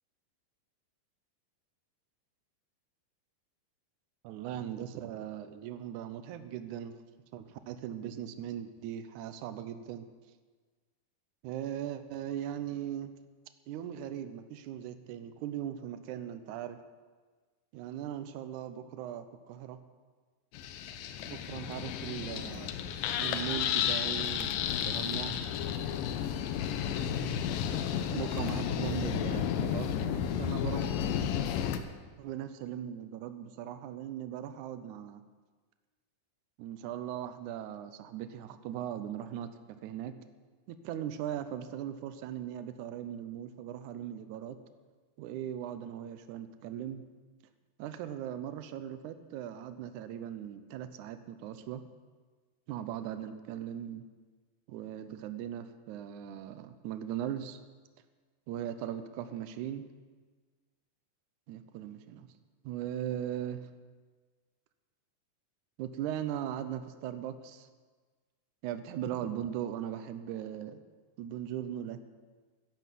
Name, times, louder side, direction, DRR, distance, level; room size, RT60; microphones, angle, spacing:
voice 1, 4.2-7.0 7.3-10.0 11.4-13.1 13.7-16.8 17.7-19.8 21.2-22.7 23.2-25.4 28.1-30.9 32.2-35.2 36.6-39.5 39.8-40.1 40.7-44.6 45.2-47.0 47.8-51.8 52.7-54.0 54.7-57.6 58.5-59.9 61.5-62.3 62.6-63.7 65.8-67.7 68.6-70.8 71.2-72.0, right 10 dB, 85° right, 10 dB, 1.7 m, -39 dB
sound 1, 20.5-31.8, left 9 dB, 80° left, 2.3 m, -32 dB
11.0 x 10.5 x 7.6 m, 1.4 s
omnidirectional pair, 4.3 m